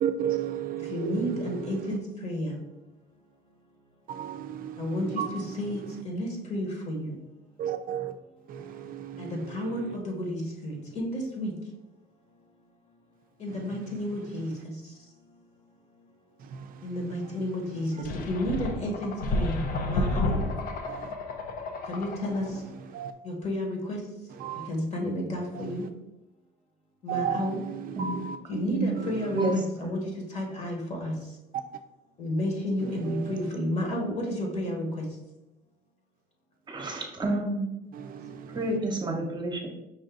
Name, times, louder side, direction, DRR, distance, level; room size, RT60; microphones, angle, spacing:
voice 1, 0.0-2.0 4.1-5.5 7.6-8.1 8.5-10.0 13.5-13.6 16.4-17.0 17.9-18.0 20.9-21.1 22.7-23.1 24.4-24.7 25.5-25.9 27.1-28.4 29.0-29.6 32.8-33.5 36.8-36.9 37.9-38.8, right 9 dB, 60° right, 0.4 m, -34 dB
voice 2, 0.9-2.6 4.8-7.2 9.2-11.5 13.4-14.5 14.8-14.9 16.8-20.5 21.9-22.6 23.2-24.0 24.7-25.8 27.0-27.6 28.5-31.1 32.2-35.0, left 1 dB, 40° left, 1.4 m, -31 dB
sound 1, 18.0-22.6, left 2 dB, 60° left, 0.6 m, -31 dB
voice 3, 29.3-29.9 36.7-37.7 38.5-39.7, right 2 dB, 25° right, 0.9 m, -29 dB
5.4 x 2.6 x 3.7 m
cardioid pair, 110°, 17 cm